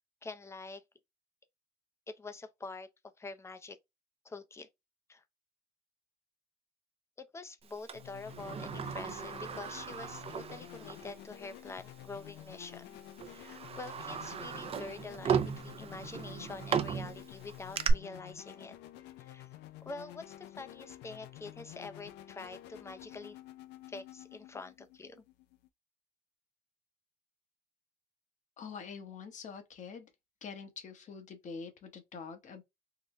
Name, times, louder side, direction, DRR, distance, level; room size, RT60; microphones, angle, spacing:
voice 1, 0.2-0.8 2.1-2.9 3.2-3.8 4.2-4.7 5.1-5.2 7.2-13.0 13.3-18.8 19.2-19.5 19.8-23.4 23.9-25.2, left 3 dB, 15° left, 0.5 m, -46 dB
sound 1, 7.9-25.7, left 14 dB, 85° left, 0.5 m, -51 dB
Sliding door, 7.9-11.1 11.5-11.6 12.5-12.7 13.2-17.9, right 7 dB, 35° right, 0.5 m, -36 dB
voice 2, 28.6-30.1 30.4-32.6, left 5 dB, 45° left, 1.0 m, -45 dB
3.9 x 2.1 x 2.9 m
cardioid pair, 110°, 17 cm